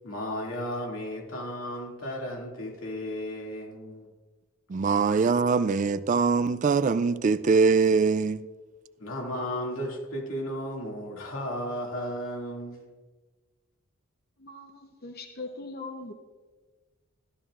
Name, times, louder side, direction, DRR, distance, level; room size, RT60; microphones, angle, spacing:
voice 1, 0.0-4.1 9.0-12.8, equal, 85° left, 2.4 m, -34 dB
voice 2, 4.7-8.4, right 4 dB, 35° right, 0.3 m, -23 dB
voice 3, 14.4-16.1, left 3 dB, 50° left, 0.8 m, -40 dB
14.5 x 12.5 x 2.5 m
head